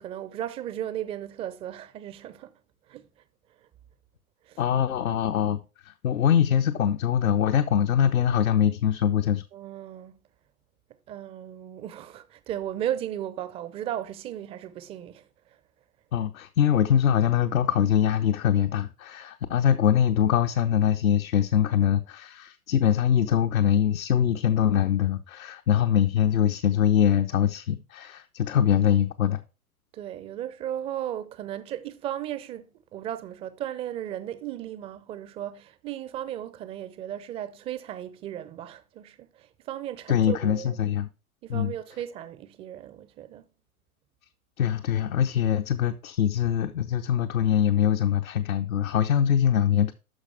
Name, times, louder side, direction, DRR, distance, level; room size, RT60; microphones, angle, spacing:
voice 1, 0.0-2.5 2.9-3.1 4.4-4.6 9.5-10.2 11.1-15.6 29.9-40.8 41.4-43.5, right 11 dB, 15° right, 0.5 m, -35 dB
voice 2, 4.6-9.4 16.1-29.4 40.1-41.1 41.5-41.7 44.6-49.9, left 9 dB, 65° left, 0.8 m, -23 dB
13.0 x 4.8 x 3.4 m
figure-of-eight pair, 105°, 45 cm